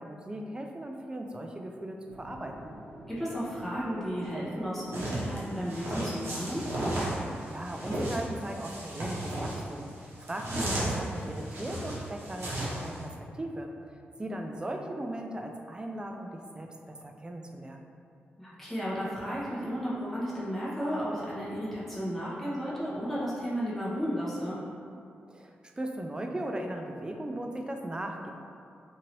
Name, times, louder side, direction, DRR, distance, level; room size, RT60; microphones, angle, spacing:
voice 1, 0.0-2.7 7.3-13.9 14.2-17.9 25.3-28.3, right 1 dB, 20° right, 3 dB, 0.3 m, -38 dB
sound 1, 2.1-12.2, equal, 50° right, 1.3 m, -49 dB
voice 2, 3.1-6.7 10.5-10.8 18.4-24.6, equal, 5° left, -9 dB, 1.0 m, -33 dB
sound 2, 4.9-13.0, right 1 dB, 75° right, 0.8 m, -34 dB
2.8 x 2.6 x 2.9 m, 2.4 s
cardioid pair, 65°, 4 cm